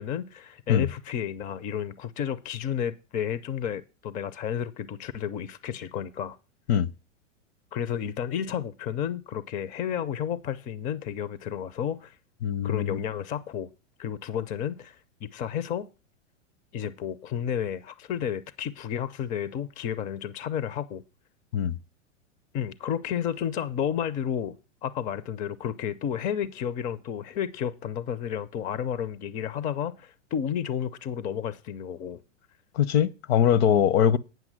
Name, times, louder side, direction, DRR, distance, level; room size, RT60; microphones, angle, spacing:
voice 1, 0.0-6.4 7.7-12.2 12.6-13.7 14.0-15.9 16.7-21.0 22.5-24.6 24.8-32.2, left 9 dB, 20° left, 0.5 m, -31 dB
voice 2, 12.4-13.0 21.5-21.7 32.7-34.2, left 9 dB, 55° left, 0.8 m, -22 dB
9.2 x 6.0 x 7.3 m
hypercardioid pair, 120°, 38 cm